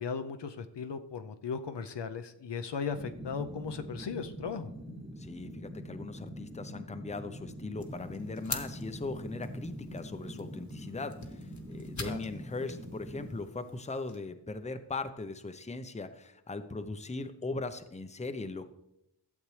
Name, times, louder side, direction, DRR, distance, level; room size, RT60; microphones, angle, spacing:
voice 1, 0.0-4.7 12.0-12.2, left 6 dB, 65° left, 8 dB, 0.7 m, -37 dB
sound 1, 2.9-13.3, equal, ahead, 1.2 m, -44 dB
voice 2, 5.2-18.7, left 3 dB, 15° left, 9 dB, 0.7 m, -39 dB
sound 2, 7.8-14.2, left 3 dB, 40° left, 1.2 m, -45 dB
12.0 x 7.3 x 3.2 m, 0.82 s
cardioid pair, 55°, 45 cm